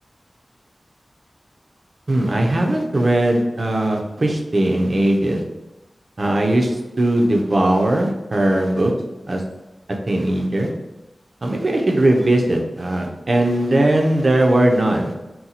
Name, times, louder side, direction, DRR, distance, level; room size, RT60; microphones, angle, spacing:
voice 1, 2.1-5.4 6.2-8.9 9.3-9.4 10.1-10.7 11.4-15.2, right 1 dB, 55° right, 1 dB, 0.6 m, -19 dB
2.8 x 2.2 x 4.0 m, 1.0 s
wide cardioid pair, 55°, 0 cm